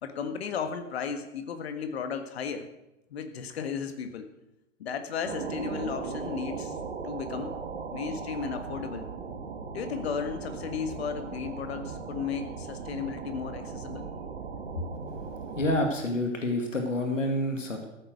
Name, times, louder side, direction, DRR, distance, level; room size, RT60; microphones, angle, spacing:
voice 1, 0.0-2.7 3.1-4.3 4.8-6.7 7.0-7.6 7.9-9.1 9.7-14.1 14.7-14.8, left 6 dB, 55° left, 8 dB, 1.7 m, -34 dB
sound 1, 5.2-15.9, right 5 dB, 60° right, 2.0 m, -38 dB
voice 2, 15.6-17.9, left 1 dB, 80° left, 3 dB, 2.2 m, -28 dB
14.5 x 8.1 x 6.5 m, 0.92 s
figure-of-eight pair, 115°, 38 cm